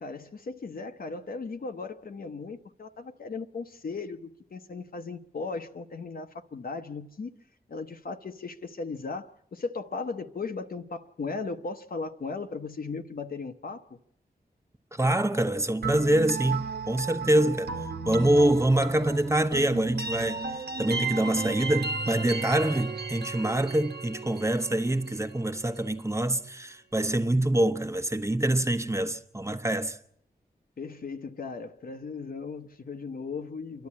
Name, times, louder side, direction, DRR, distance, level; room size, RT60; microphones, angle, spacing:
voice 1, 0.0-7.3 7.7-14.0 17.4-17.6 30.8-33.9, left 4 dB, 65° left, 1.0 m, -37 dB
voice 2, 14.9-17.7 18.0-30.0, right 1 dB, 15° right, 1.0 m, -25 dB
sound 1, 15.8-25.6, right 4 dB, 90° right, 1.6 m, -35 dB
27.5 x 11.5 x 8.5 m
wide cardioid pair, 70°, 16 cm